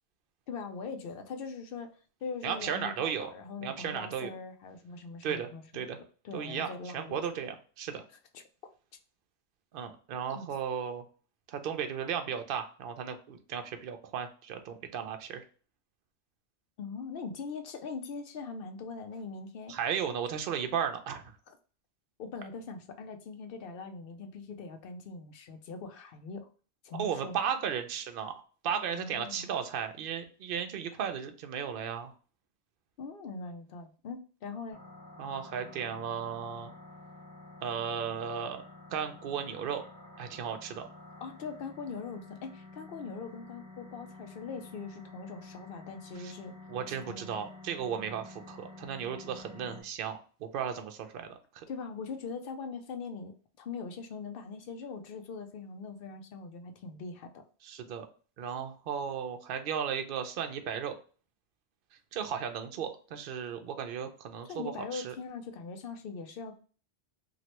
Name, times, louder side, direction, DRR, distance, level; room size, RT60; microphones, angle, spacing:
voice 1, 0.5-5.9 6.2-7.2 8.3-8.4 10.3-10.5 16.8-19.8 21.5-21.6 22.2-26.5 26.8-27.4 28.9-29.5 33.0-34.8 41.2-46.6 46.9-47.3 51.7-57.5 64.5-66.6, left 4 dB, 65° left, 7 dB, 0.7 m, -41 dB
voice 2, 2.4-3.3 3.6-4.3 5.2-6.0 6.3-8.0 9.7-11.0 11.5-15.4 19.7-21.2 26.9-28.3 28.6-32.1 35.2-36.7 37.6-38.6 38.9-39.8 40.2-40.8 46.2-46.3 46.7-51.7 57.6-58.1 58.4-60.9 62.1-65.2, right 7 dB, 60° right, 7 dB, 0.7 m, -35 dB
sound 1, 34.7-49.8, left 2 dB, 15° right, 0.9 m, -50 dB
3.1 x 2.5 x 2.9 m, 0.38 s
omnidirectional pair, 1.1 m